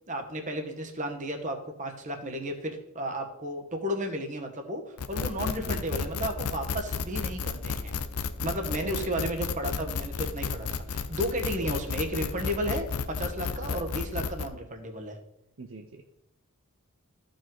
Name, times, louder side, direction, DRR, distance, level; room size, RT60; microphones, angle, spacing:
voice 1, 0.1-7.9 8.4-15.2, equal, 35° right, 4 dB, 1.2 m, -33 dB
sound 1, 5.0-14.5, left 5 dB, 80° left, 0.7 m, -32 dB
voice 2, 5.7-6.1 8.8-9.1 11.6-11.8 15.6-16.1, right 3 dB, 60° right, 4 dB, 0.7 m, -42 dB
13.5 x 5.2 x 3.8 m, 0.85 s
head